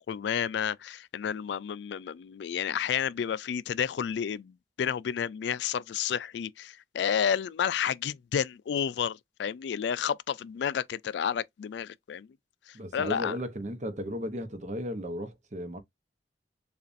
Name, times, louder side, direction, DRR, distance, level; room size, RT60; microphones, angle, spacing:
voice 1, 0.1-12.3 12.7-13.4, left 8 dB, 75° left, 0.3 m, -31 dB
voice 2, 12.7-15.8, equal, 45° right, 0.8 m, -35 dB
6.8 x 2.5 x 2.6 m
head